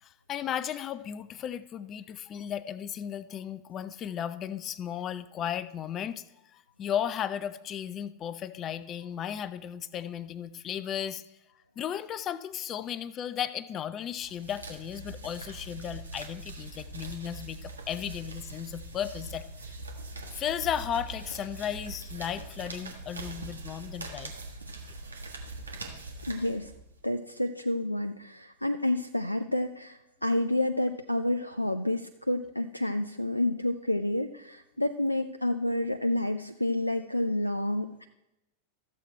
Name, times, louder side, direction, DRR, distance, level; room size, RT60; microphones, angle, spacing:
voice 1, 0.0-6.2 6.5-11.2 11.8-19.8 20.3-24.3, left 9 dB, 30° left, 15 dB, 0.5 m, -35 dB
sound 1, 14.1-27.0, right 2 dB, 75° right, 1.5 m, -42 dB
voice 2, 26.3-26.7 27.0-38.1, left 1 dB, 90° left, 8 dB, 0.4 m, -29 dB
13.5 x 7.4 x 4.4 m, 0.91 s
figure-of-eight pair, 90°, 0 cm